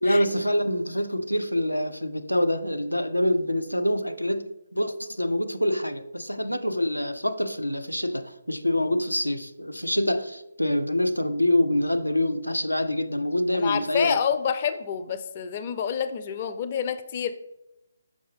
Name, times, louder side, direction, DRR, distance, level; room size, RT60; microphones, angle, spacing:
voice 1, 0.0-14.2, left 1 dB, 90° left, 9 dB, 0.5 m, -26 dB
voice 2, 13.5-17.3, left 7 dB, 35° left, 9 dB, 0.4 m, -28 dB
6.5 x 5.6 x 3.3 m, 0.88 s
figure-of-eight pair, 140°, 0 cm